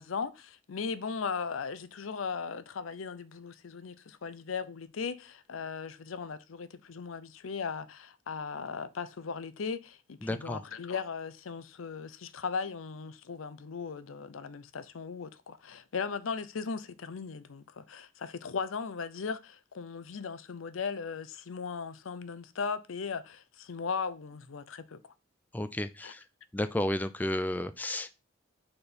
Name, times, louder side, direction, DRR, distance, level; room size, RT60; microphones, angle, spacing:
voice 1, 0.0-25.0 26.0-26.1, left 5 dB, 80° left, 0.6 m, -37 dB
voice 2, 10.2-10.6 25.5-26.2 26.5-28.1, left 1 dB, 10° left, 0.4 m, -32 dB
4.4 x 4.3 x 5.0 m
head